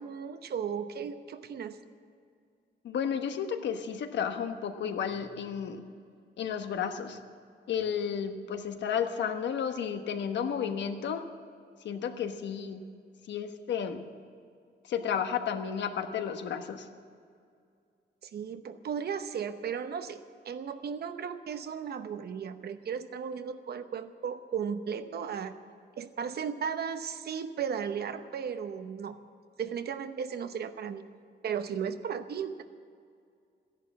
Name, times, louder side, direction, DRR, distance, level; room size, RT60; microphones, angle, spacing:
voice 1, 0.0-1.8 18.2-25.6 26.0-29.2 29.6-31.0 31.4-32.6, right 7 dB, 60° right, 9 dB, 0.9 m, -35 dB
voice 2, 2.8-5.9 6.4-7.2 7.7-11.3 11.8-12.8 13.3-14.0 14.8-16.9, left 7 dB, 75° left, 7 dB, 1.2 m, -32 dB
14.5 x 11.0 x 8.3 m, 2.3 s
cardioid pair, 135°, 18 cm